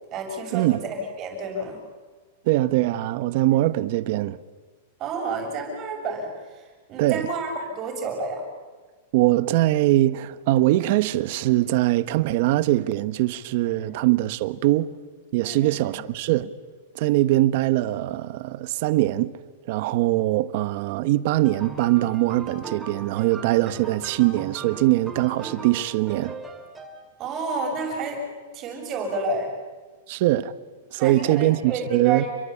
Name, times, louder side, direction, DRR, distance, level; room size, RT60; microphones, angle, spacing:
voice 1, 0.1-1.8 3.6-3.7 5.0-8.4 13.7-13.9 15.4-16.0 27.2-28.2 28.5-29.5 31.0-32.3, right 3 dB, 25° right, 7.3 m, -30 dB
voice 2, 2.5-4.4 7.0-7.2 9.1-14.9 15.3-16.5 16.9-19.3 19.7-26.4 30.1-30.5 30.9-32.2, right 16 dB, 45° right, 1.2 m, -22 dB
sound 1, 21.4-27.2, right 3 dB, 5° right, 3.1 m, -39 dB
30.0 x 23.0 x 8.6 m
supercardioid pair, 170°, 0 cm